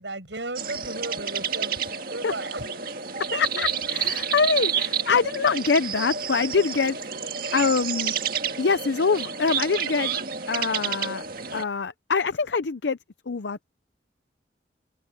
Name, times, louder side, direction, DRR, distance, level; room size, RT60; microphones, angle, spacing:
voice 1, 0.0-2.9, right 2 dB, 80° right, 7.7 m, -35 dB
sound 1, 0.6-11.6, right 7 dB, 55° right, 1.8 m, -30 dB
voice 2, 3.3-7.0 7.5-8.1 8.6-10.1 10.5-11.2 11.5-13.0 13.3-13.6, left 5 dB, 75° left, 0.6 m, -24 dB
open air
head